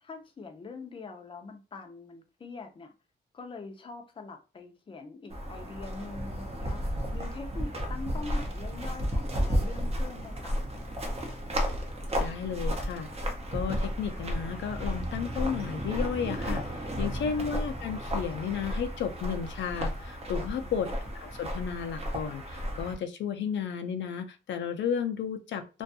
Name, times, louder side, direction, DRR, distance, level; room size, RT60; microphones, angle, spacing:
voice 1, 0.0-2.9 3.3-6.8 7.1-10.5 17.1-17.5 20.6-20.9, left 3 dB, 30° left, 0.5 m, -43 dB
sound 1, 5.3-22.9, equal, 35° right, 0.6 m, -33 dB
voice 2, 12.2-20.9 21.2-25.8, left 7 dB, 90° left, 0.4 m, -33 dB
2.5 x 2.2 x 2.6 m
wide cardioid pair, 125°, 18 cm